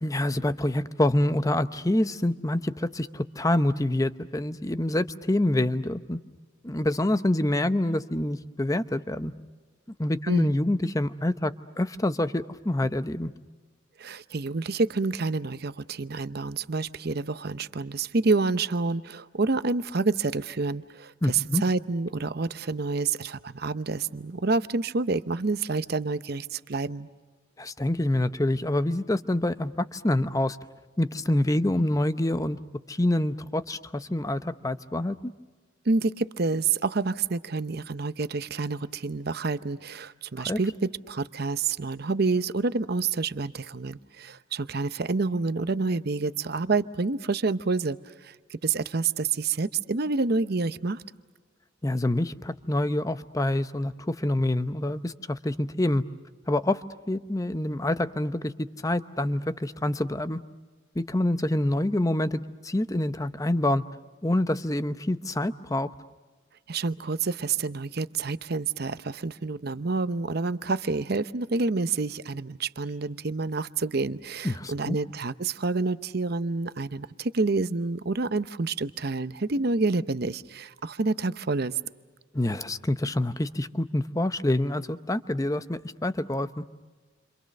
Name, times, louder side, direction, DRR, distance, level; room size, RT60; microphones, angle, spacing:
voice 1, 0.0-6.2 6.6-9.3 10.0-13.3 21.2-21.6 27.6-30.6 31.0-32.6 32.9-35.3 40.4-40.6 51.8-56.0 56.5-56.8 57.1-60.4 60.9-63.8 64.2-65.9 74.4-75.0 82.3-86.6, left 1 dB, 15° left, 12 dB, 0.8 m, -26 dB
voice 2, 14.0-27.1 35.8-51.0 66.7-81.7, right 3 dB, 55° right, 13 dB, 0.8 m, -28 dB
29.5 x 26.5 x 6.6 m, 1.3 s
head